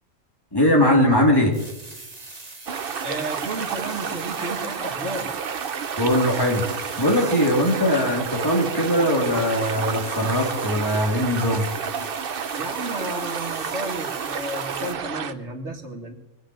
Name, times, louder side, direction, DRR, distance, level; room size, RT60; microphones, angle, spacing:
voice 1, 0.5-1.5 6.0-6.7 7.0-11.7, equal, 20° left, -1 dB, 3.0 m, -20 dB
sound 1, 1.5-14.9, right 2 dB, 35° right, 1.8 m, -40 dB
sound 2, 2.7-15.3, right 7 dB, 55° right, 0.9 m, -30 dB
voice 2, 3.0-5.4 12.6-16.1, right 1 dB, 80° right, 3 dB, 2.2 m, -33 dB
22.0 x 8.2 x 7.8 m, 0.99 s
omnidirectional pair, 1.2 m